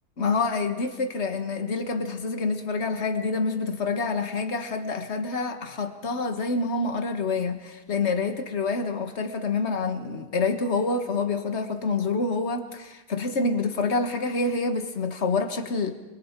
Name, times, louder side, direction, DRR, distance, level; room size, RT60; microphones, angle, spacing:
voice 1, 0.2-15.9, left 3 dB, 45° left, 7 dB, 1.7 m, -27 dB
28.0 x 23.0 x 4.6 m, 1.1 s
omnidirectional pair, 1.7 m